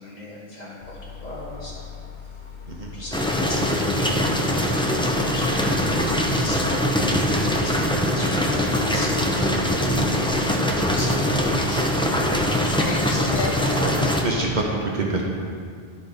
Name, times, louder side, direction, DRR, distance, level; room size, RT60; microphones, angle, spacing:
voice 1, 0.0-1.9 2.3-2.4 2.9-9.5 10.1-10.4 10.7-13.9, left 1 dB, 45° left, -6 dB, 1.9 m, -38 dB
sound 1, 0.8-14.7, left 4 dB, 65° left, 1.0 m, -38 dB
sound 2, 3.1-14.2, equal, 5° left, 0.6 m, -22 dB
voice 2, 14.2-15.2, right 3 dB, 50° right, -2 dB, 1.0 m, -26 dB
12.0 x 5.1 x 4.1 m, 2.2 s
omnidirectional pair, 1.0 m